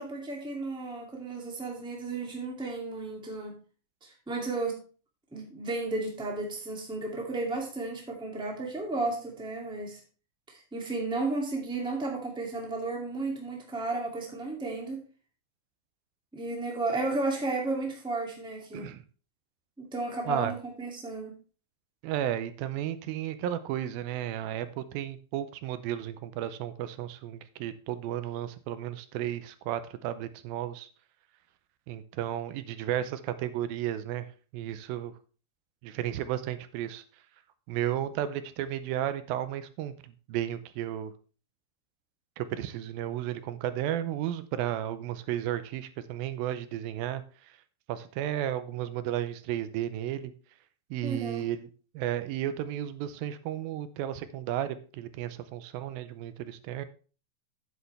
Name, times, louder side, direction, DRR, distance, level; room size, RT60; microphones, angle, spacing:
voice 1, 0.0-3.6 4.0-4.8 5.3-10.0 10.5-15.0 16.3-18.9 19.8-21.3 51.0-51.4, right 3 dB, ahead, -1 dB, 1.5 m, -33 dB
voice 2, 22.0-30.9 31.9-34.3 34.5-35.1 35.8-37.2 37.7-41.1 42.4-47.6 47.9-50.3 50.9-51.7 51.9-56.9, right 11 dB, 90° right, 12 dB, 2.5 m, -33 dB
9.4 x 8.5 x 3.3 m, 0.37 s
omnidirectional pair, 4.1 m